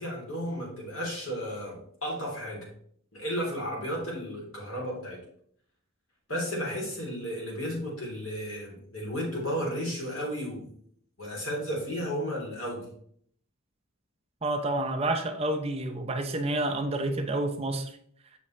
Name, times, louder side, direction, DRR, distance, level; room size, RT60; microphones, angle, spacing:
voice 1, 0.0-2.7 3.1-5.2 6.3-10.7 11.2-12.9, equal, 65° left, 3.2 m, -33 dB
voice 2, 14.4-17.9, right 2 dB, 30° right, 0.7 m, -29 dB
7.0 x 6.0 x 3.2 m
head